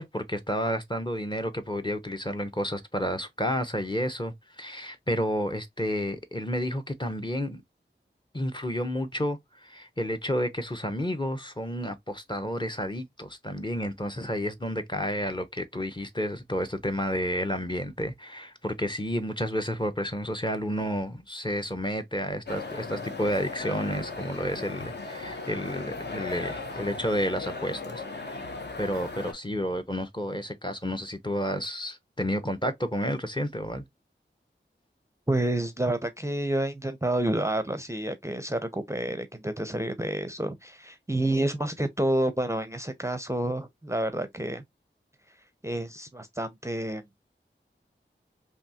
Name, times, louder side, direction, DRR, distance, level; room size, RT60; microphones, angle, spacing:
voice 1, 0.0-7.6 8.3-28.5 28.8-33.8, equal, 25° left, 0.7 m, -31 dB
sound 1, 22.5-29.3, left 3 dB, 60° left, 0.8 m, -37 dB
voice 2, 35.3-44.6 45.6-47.0, right 1 dB, 15° right, 0.5 m, -29 dB
3.4 x 2.7 x 2.7 m
wide cardioid pair, 40°, 20 cm